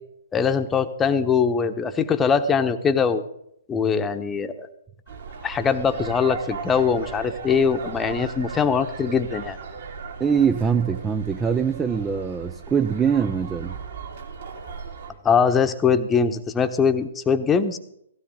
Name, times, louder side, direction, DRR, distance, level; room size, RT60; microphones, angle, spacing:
voice 1, 0.3-3.2 3.7-4.7 5.4-9.6 15.2-17.8, left 6 dB, 15° left, 1.2 m, -22 dB
sound 1, 5.1-15.1, right 5 dB, 60° right, 3.7 m, -37 dB
voice 2, 10.2-13.8, right 6 dB, 15° right, 0.6 m, -23 dB
17.5 x 16.0 x 3.9 m
figure-of-eight pair, 125°, 0 cm